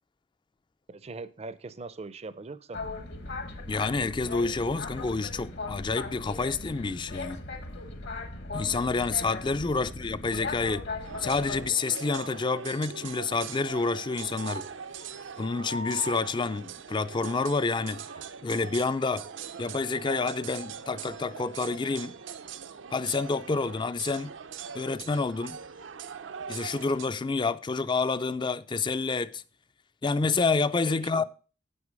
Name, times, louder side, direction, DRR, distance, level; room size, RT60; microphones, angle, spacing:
voice 1, 0.9-2.8 9.6-9.8 30.8-31.2, right 3 dB, 35° right, 0.5 m, -41 dB
Boat Water vehicle, 2.7-11.7, left 3 dB, 60° left, 1.3 m, -38 dB
voice 2, 3.7-7.4 8.5-10.9 11.2-14.7 15.4-18.0 18.4-19.3 19.6-22.2 22.9-24.3 24.7-25.6 26.5-29.4 30.0-31.2, left 4 dB, 25° left, 0.4 m, -28 dB
sound 1, 11.0-27.1, right 6 dB, 75° right, 0.6 m, -41 dB
9.5 x 6.3 x 5.2 m
head